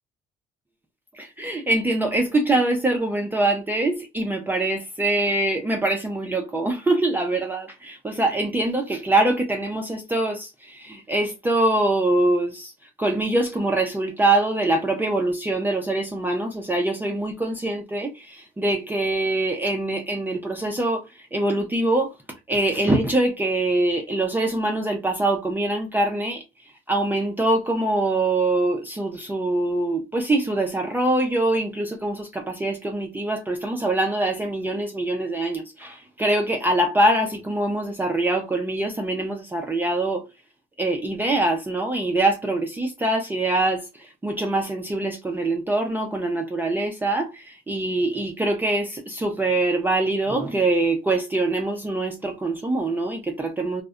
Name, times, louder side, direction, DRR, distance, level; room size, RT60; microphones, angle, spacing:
voice 1, 1.1-12.7 13.0-22.1 22.5-26.4 26.9-40.2 40.8-53.8, right 2 dB, 10° right, 0.4 m, -24 dB
2.6 x 2.0 x 2.3 m
cardioid pair, 110°, 17 cm